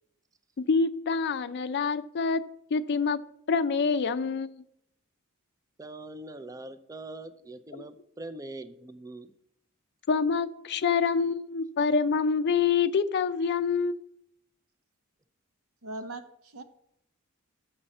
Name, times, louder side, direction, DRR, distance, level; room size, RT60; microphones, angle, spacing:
voice 1, 0.6-2.4 2.7-3.2 3.5-4.5 7.7-7.8 10.1-14.0, left 5 dB, 55° left, 13 dB, 0.5 m, -26 dB
voice 2, 5.8-9.3, right 2 dB, 15° right, 11 dB, 0.5 m, -42 dB
voice 3, 15.8-16.6, right 2 dB, 75° right, 8 dB, 0.9 m, -40 dB
7.3 x 5.5 x 7.5 m, 0.74 s
head